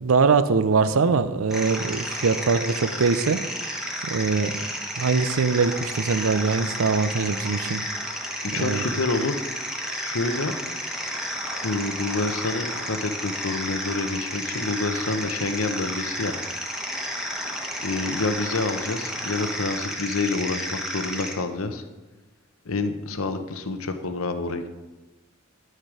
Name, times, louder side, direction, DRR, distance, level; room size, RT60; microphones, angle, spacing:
voice 1, 0.0-3.4 4.0-4.6 5.0-7.8 8.6-8.8, right 4 dB, 75° right, 13 dB, 0.5 m, -22 dB
sound 1, 1.5-21.3, equal, 5° right, 1.2 m, -32 dB
voice 2, 8.4-9.4 10.0-10.5 11.6-16.3 17.8-21.8 22.6-24.8, left 3 dB, 80° left, 8 dB, 0.9 m, -28 dB
11.0 x 6.5 x 4.9 m, 1.1 s
head